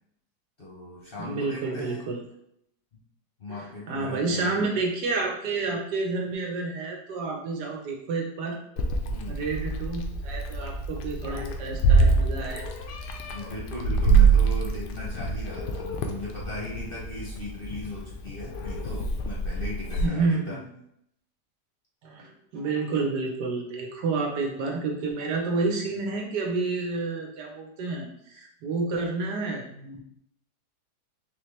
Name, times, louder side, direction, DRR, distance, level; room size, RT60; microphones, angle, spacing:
voice 1, 0.6-2.0 3.4-4.6 9.0-9.4 13.3-20.6, left 2 dB, 45° left, -5 dB, 0.8 m, -38 dB
voice 2, 1.2-2.2 3.5-8.6 9.3-12.7 20.0-20.6 22.0-30.0, right 3 dB, 80° right, 1 dB, 1.4 m, -30 dB
Meow, 8.8-20.1, right 4 dB, 85° left, 1.2 m, -25 dB
4.3 x 3.0 x 3.1 m, 0.75 s
omnidirectional pair, 1.8 m